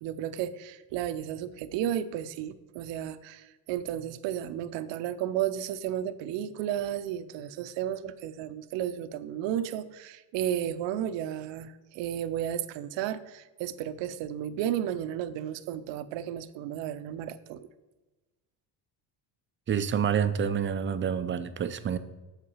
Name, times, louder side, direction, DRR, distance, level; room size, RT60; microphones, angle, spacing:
voice 1, 0.0-17.6, right 10 dB, 70° right, 13 dB, 0.7 m, -33 dB
voice 2, 19.7-22.0, right 7 dB, 25° right, 12 dB, 0.5 m, -28 dB
7.6 x 5.6 x 5.5 m, 1.2 s
cardioid pair, 115°, 45 cm